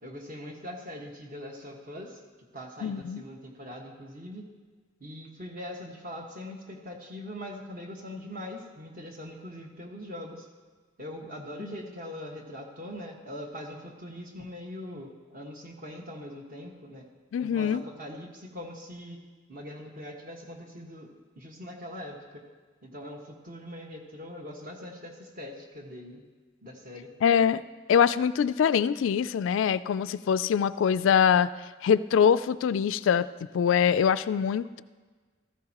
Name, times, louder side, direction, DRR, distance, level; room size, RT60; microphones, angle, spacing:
voice 1, 0.0-2.2 2.5-4.5 5.0-10.5 11.0-17.1 17.4-19.2 19.5-21.1 21.4-22.4 22.8-26.2 26.6-27.1, left 1 dB, 45° right, 1 dB, 1.5 m, -42 dB
voice 2, 2.8-3.2 11.6-11.7 17.3-17.8 27.2-27.6 27.9-31.5 31.8-33.3 33.5-34.8, left 7 dB, 70° left, 15 dB, 0.3 m, -23 dB
15.5 x 14.0 x 3.0 m, 1.4 s
head